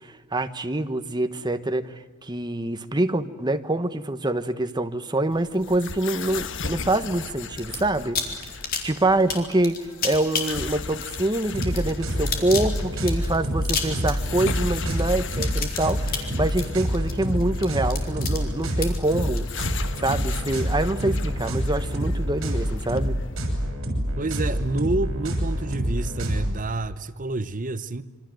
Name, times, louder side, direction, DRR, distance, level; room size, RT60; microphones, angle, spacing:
voice 1, 0.0-8.2 8.8-19.4 20.0-23.2, right 1 dB, 20° right, 1.2 m, -25 dB
sound 1, 5.3-23.4, left 5 dB, 60° left, 1.3 m, -38 dB
sound 2, 7.6-7.8 8.2-20.4, left 6 dB, 45° left, 4.1 m, -31 dB
sound 3, 11.5-26.5, equal, 70° right, 6.7 m, -27 dB
voice 2, 24.2-28.0, right 2 dB, 40° right, 0.9 m, -28 dB
27.0 x 24.5 x 7.8 m
head